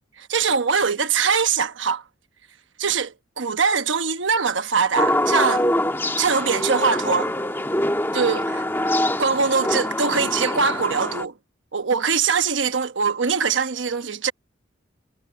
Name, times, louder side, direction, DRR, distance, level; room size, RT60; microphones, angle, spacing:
voice 1, 0.3-2.0 2.8-5.7 6.2-7.3 8.1-8.6 9.2-11.3 11.7-14.3, right 5 dB, 75° right, 1.1 m, -22 dB
sound 1, 5.0-11.2, left 1 dB, 10° left, 1.7 m, -24 dB
head